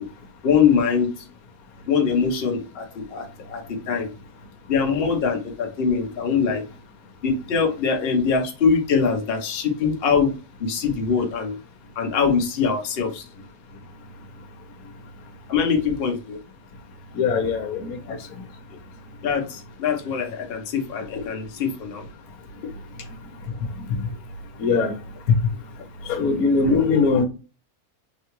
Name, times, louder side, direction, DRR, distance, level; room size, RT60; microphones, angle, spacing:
voice 1, 0.4-1.1 1.9-4.1 4.7-6.6 7.2-10.3 10.6-11.6 12.0-13.2 15.5-16.4 18.1-18.2 19.2-22.0 26.7-26.8, left 6 dB, 50° left, 0.8 m, -23 dB
voice 2, 17.2-18.0 24.6-24.9 26.1-27.2, left 4 dB, 75° left, 1.2 m, -21 dB
3.8 x 2.3 x 2.9 m
omnidirectional pair, 1.6 m